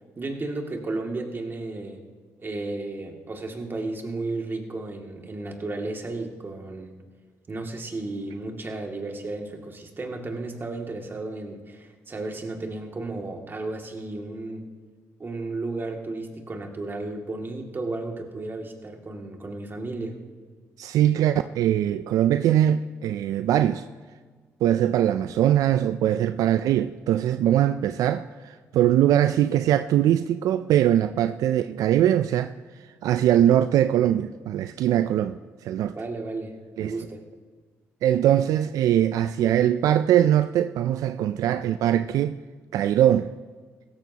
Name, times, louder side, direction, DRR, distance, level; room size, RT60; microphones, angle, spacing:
voice 1, 0.2-2.0 2.4-7.0 7.5-14.7 15.2-20.2 36.0-36.5 36.8-37.2, right 2 dB, 35° right, 2.3 m, -33 dB
voice 2, 20.8-23.8 24.6-32.5 33.0-35.9 36.8-36.9 38.0-42.4 42.7-43.3, right 11 dB, 80° right, 0.4 m, -21 dB
16.5 x 14.0 x 2.9 m
supercardioid pair, 65°, 6 cm